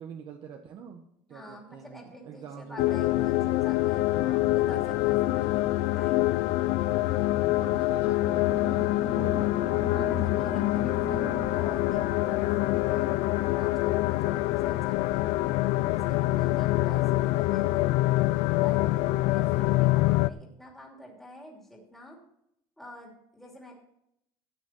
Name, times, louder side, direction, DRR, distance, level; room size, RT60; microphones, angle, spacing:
voice 1, 0.0-3.4 4.1-6.0 6.7-9.5 10.1-11.1 16.3-16.6, right 7 dB, 45° right, 3 dB, 1.2 m, -46 dB
voice 2, 1.3-4.0 4.5-5.5 5.9-6.2 9.9-12.0 12.3-15.2 15.9-17.9 18.6-18.8 19.2-22.2 22.8-23.7, equal, ahead, -2 dB, 2.8 m, -47 dB
sound 1, 2.8-20.3, left 18 dB, 80° left, 0.5 m, -25 dB
sound 2, 8.5-13.5, left 3 dB, 25° left, 1.4 m, -39 dB
14.0 x 9.4 x 4.5 m, 0.75 s
cardioid pair, 175°, 11 cm